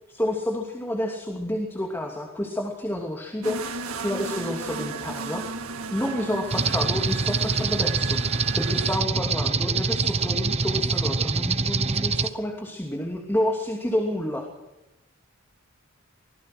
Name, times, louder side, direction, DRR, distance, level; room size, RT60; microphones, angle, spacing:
voice 1, 0.1-3.7 4.0-5.4 5.9-14.5, left 1 dB, 10° left, 1 dB, 2.7 m, -29 dB
sound 1, 3.4-9.0, right 4 dB, 85° right, 2.1 m, -35 dB
sound 2, 6.5-12.3, right 4 dB, 30° right, 1.0 m, -25 dB
25.0 x 19.5 x 6.2 m, 0.97 s
head